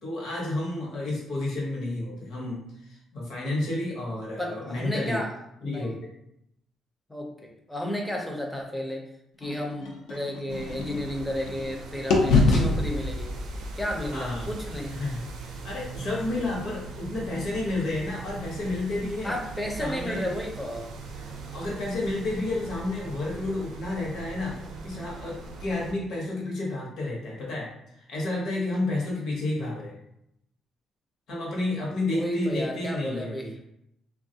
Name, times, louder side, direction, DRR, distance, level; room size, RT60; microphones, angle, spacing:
voice 1, 0.0-5.2 5.6-6.1 14.1-14.5 14.9-19.3 19.8-20.3 21.2-24.6 24.8-30.0 31.3-33.5, left 2 dB, 55° left, -4 dB, 0.9 m, -31 dB
voice 2, 4.4-5.3 5.6-6.0 7.1-9.0 9.4-13.4 13.8-15.0 19.2-20.9 32.1-33.5, left 1 dB, 5° left, 0 dB, 0.5 m, -32 dB
sound 1, 9.4-11.7 12.1-16.1, left 3 dB, 80° left, 0.5 m, -27 dB
sound 2, 10.5-25.9, right 4 dB, 85° right, 0.5 m, -41 dB
3.2 x 2.3 x 2.7 m, 0.79 s
cardioid pair, 170°, 0 cm